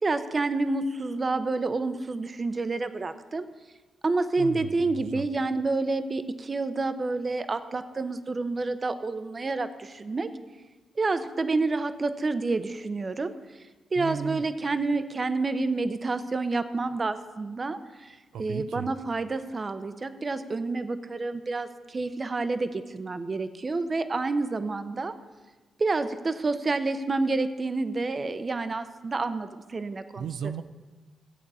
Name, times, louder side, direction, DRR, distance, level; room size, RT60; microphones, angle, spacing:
voice 1, 0.0-3.5 4.0-10.3 11.0-13.3 13.9-25.1 25.8-30.2, right 3 dB, 30° right, 11 dB, 0.6 m, -29 dB
voice 2, 4.4-5.3 14.0-14.5 18.3-18.9 30.2-30.6, right 7 dB, 90° right, 10 dB, 0.4 m, -35 dB
15.5 x 8.3 x 4.1 m, 1.3 s
cardioid pair, 120°, 0 cm